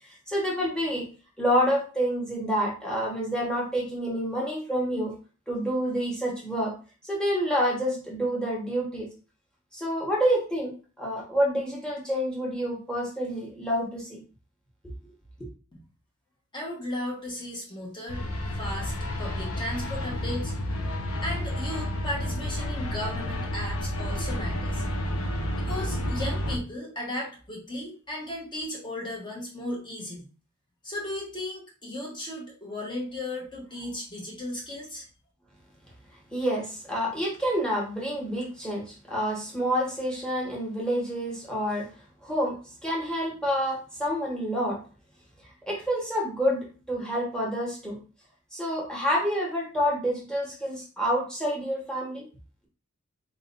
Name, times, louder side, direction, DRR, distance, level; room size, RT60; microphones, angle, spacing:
voice 1, 0.3-1.0 1.4-5.1 5.5-6.7 7.0-9.1 9.7-10.7 11.0-14.2 15.4-15.5 36.3-41.9 42.2-44.8 45.7-48.0 48.5-52.2, equal, 5° left, -4 dB, 1.4 m, -28 dB
voice 2, 16.5-18.2 18.5-20.5 21.2-24.8 25.6-30.2 30.8-35.0, left 1 dB, 20° left, -2 dB, 1.3 m, -35 dB
sound 1, 18.1-26.6, left 1 dB, 70° left, 0.9 m, -30 dB
4.4 x 3.8 x 2.6 m, 0.37 s
head